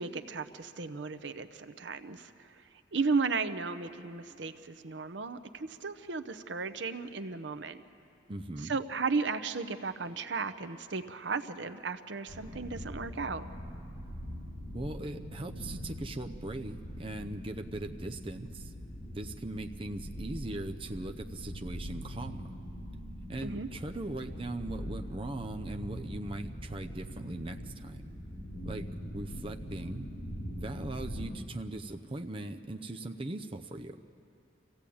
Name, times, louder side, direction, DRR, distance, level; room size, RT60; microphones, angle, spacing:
voice 1, 0.0-2.3 2.9-7.8 8.6-13.4 23.4-23.7, right 4 dB, 70° right, 11 dB, 0.8 m, -35 dB
voice 2, 8.3-8.8 14.7-18.7 19.1-22.5 23.3-28.0 28.7-28.9 29.1-30.1 30.6-34.0, right 2 dB, 30° right, 5 dB, 0.6 m, -39 dB
sound 1, 12.3-31.3, equal, 80° left, 4.1 m, -42 dB
25.5 x 16.0 x 8.6 m, 2.7 s
head